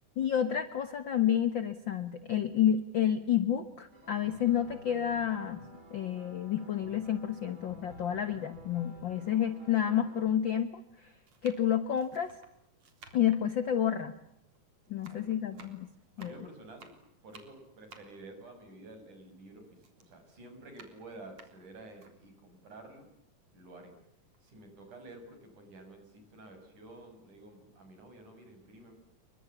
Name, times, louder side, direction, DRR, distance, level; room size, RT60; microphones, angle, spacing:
voice 1, 0.2-5.6 5.9-11.1 11.4-12.4 13.1-14.2 14.9-15.9 16.2-16.3, left 10 dB, 50° left, 11 dB, 1.5 m, -30 dB
sound 1, 3.9-10.3, right 1 dB, 40° right, 8.4 m, -53 dB
sound 2, 8.4-8.5 9.4-9.5 10.5-10.7 11.2-14.6 14.9-19.4 19.8-22.2 22.7-22.8 23.1-24.0 24.3-24.5, right 4 dB, 55° right, 4.8 m, -57 dB
voice 2, 15.0-16.9 17.2-23.1 23.5-24.0 24.4-28.9, right 2 dB, 70° right, 6 dB, 8.2 m, -51 dB
29.0 x 24.0 x 7.2 m, 0.79 s
omnidirectional pair, 3.6 m